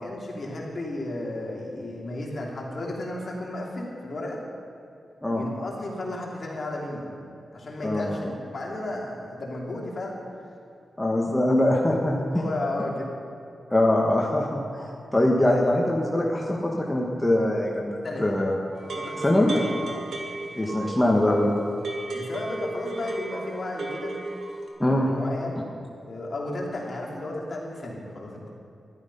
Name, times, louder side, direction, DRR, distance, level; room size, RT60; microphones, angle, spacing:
voice 1, 0.0-4.4 5.3-7.1 7.5-10.2 12.2-13.1 18.0-18.3 19.0-20.0 22.1-24.2 24.9-25.6 26.0-28.5, left 1 dB, 50° left, -2 dB, 3.0 m, -33 dB
voice 2, 7.8-8.2 11.0-12.4 13.7-18.6 19.2-19.5 20.6-21.5 24.8-25.1, left 1 dB, 10° left, -2 dB, 1.5 m, -23 dB
sound 1, 18.7-24.7, right 2 dB, 75° right, 2.1 m, -35 dB
13.0 x 12.0 x 5.6 m, 2.5 s
cardioid pair, 75°, 0 cm